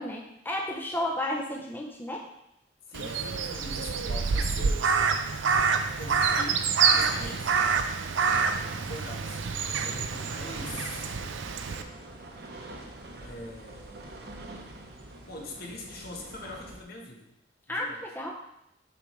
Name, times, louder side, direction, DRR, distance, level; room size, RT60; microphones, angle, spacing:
voice 1, 0.0-2.3 17.7-18.4, left 1 dB, 10° left, -1 dB, 0.6 m, -32 dB
voice 2, 2.9-4.9 6.0-7.8 8.7-11.1 13.2-14.0 15.3-17.3 17.7-18.0, left 2 dB, 55° left, 1 dB, 1.0 m, -42 dB
Crow, 2.9-11.8, right 5 dB, 90° right, 0.5 m, -27 dB
sound 1, 5.5-16.8, right 2 dB, 55° right, 0.8 m, -46 dB
7.0 x 4.7 x 3.1 m, 0.81 s
head